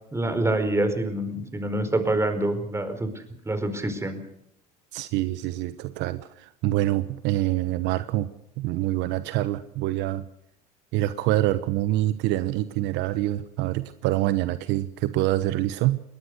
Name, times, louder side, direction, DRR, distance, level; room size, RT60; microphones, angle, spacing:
voice 1, 0.1-3.1 3.4-4.2, right 1 dB, 15° right, 9 dB, 4.7 m, -26 dB
voice 2, 4.9-8.3 8.6-10.3 10.9-16.0, right 15 dB, 65° right, 14 dB, 1.1 m, -26 dB
22.5 x 19.0 x 6.6 m, 0.74 s
hypercardioid pair, 90°, 20 cm